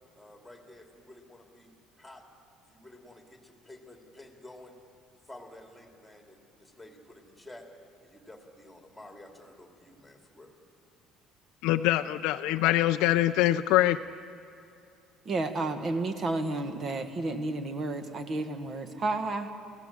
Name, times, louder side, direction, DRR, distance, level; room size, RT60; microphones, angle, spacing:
voice 1, 0.1-1.7 2.0-2.2 2.7-4.7 5.3-7.7 8.0-10.5, left 1 dB, ahead, 1 dB, 2.7 m, -51 dB
voice 2, 11.6-14.0, left 15 dB, 75° left, 9 dB, 0.5 m, -24 dB
voice 3, 15.2-19.5, right 2 dB, 30° right, 8 dB, 1.5 m, -31 dB
28.5 x 17.0 x 7.4 m, 2.5 s
cardioid pair, 160°, 0 cm